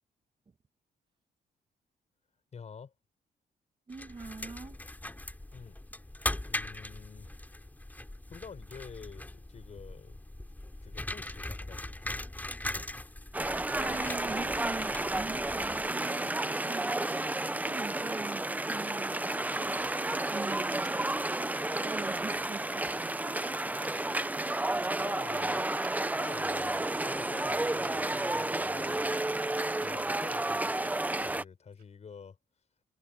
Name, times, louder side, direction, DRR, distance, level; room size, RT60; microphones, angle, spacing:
voice 1, 2.5-2.9 5.5-5.8 6.4-7.4 8.3-10.2 10.8-12.3 24.7-29.1 29.8-30.9 31.2-32.4, left 6 dB, 45° left, 6.1 m, -49 dB
sound 1, 3.9-16.0, left 1 dB, 10° left, 3.7 m, -40 dB
voice 2, 3.9-4.8 13.8-16.9 17.6-19.3 19.6-19.9 20.3-21.0 21.7-23.4, right 4 dB, 30° right, 1.8 m, -43 dB
sound 2, 13.3-31.4, right 2 dB, 10° right, 0.7 m, -31 dB
sound 3, 31.8-31.9, right 10 dB, 75° right, 4.6 m, -57 dB
cardioid pair, 105°, 16 cm